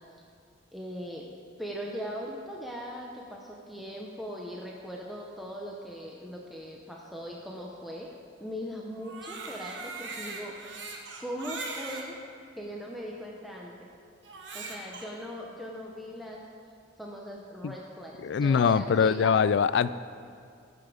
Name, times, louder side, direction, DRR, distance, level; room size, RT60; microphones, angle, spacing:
voice 1, 0.7-1.3 1.6-8.1 8.4-10.6 11.2-12.2 12.6-13.9 14.5-16.4 17.0-19.3, equal, ahead, -2 dB, 0.8 m, -39 dB
Crying sobbing, 8.9-12.1 12.8-12.9 14.2-15.1, right 3 dB, 65° right, 1.3 m, -40 dB
voice 2, 18.2-19.9, left 6 dB, 60° left, 16 dB, 0.3 m, -23 dB
15.5 x 7.0 x 5.0 m, 2.3 s
head